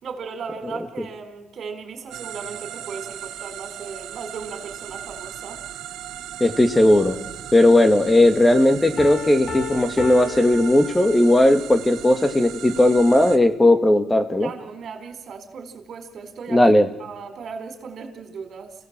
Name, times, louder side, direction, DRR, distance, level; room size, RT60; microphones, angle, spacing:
voice 1, 0.0-5.6 14.4-16.6 17.0-18.7, right 5 dB, 60° right, 6 dB, 4.3 m, -36 dB
sound 1, 2.1-13.4, right 11 dB, 90° right, 1.5 m, -37 dB
voice 2, 6.4-7.2 7.5-14.5 16.5-16.9, left 1 dB, 15° left, 8 dB, 2.1 m, -17 dB
Piano, 9.0-11.5, left 8 dB, 45° left, 1.9 m, -34 dB
29.0 x 17.0 x 7.6 m, 1.0 s
cardioid pair, 90°, 0 cm